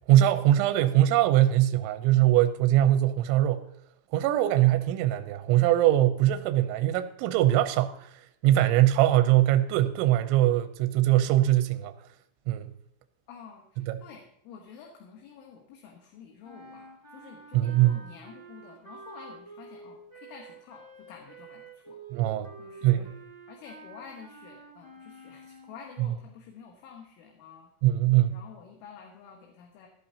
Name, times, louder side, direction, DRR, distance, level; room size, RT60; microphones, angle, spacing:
voice 1, 0.1-3.7 4.1-8.1 8.4-11.9 12.5-12.7 13.8-14.0 17.5-18.0 22.1-22.5 22.8-23.1 27.8-28.4, right 13 dB, 80° right, 2.8 m, -22 dB
voice 2, 13.3-22.0 22.6-23.1 23.5-27.7 28.3-29.9, left 6 dB, 75° left, 3.6 m, -49 dB
sound 1, 16.4-26.0, right 3 dB, 30° right, 1.1 m, -49 dB
16.5 x 12.0 x 2.8 m
omnidirectional pair, 5.9 m